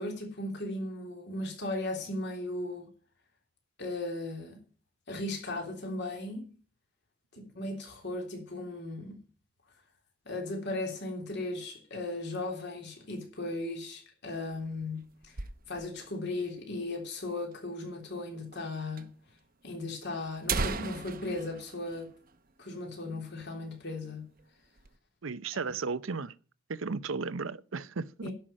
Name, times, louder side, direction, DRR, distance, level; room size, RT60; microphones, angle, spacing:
voice 1, 0.0-2.9 3.8-4.6 5.1-6.5 7.3-9.1 10.2-15.1 15.7-19.1 19.6-22.1 22.6-24.3 28.2-28.3, left 2 dB, 60° left, 3.3 m, -36 dB
sound 1, 14.3-16.1 16.4-16.5 16.7-16.8 17.5-17.6 18.5-18.6 19.0-19.1 19.8-19.9 20.3-22.9 23.2-23.3 23.7-24.0 24.4-25.0, right 4 dB, 45° right, 0.8 m, -37 dB
voice 2, 25.2-26.3 26.7-28.3, right 4 dB, 75° right, 0.7 m, -35 dB
11.5 x 5.7 x 8.7 m
head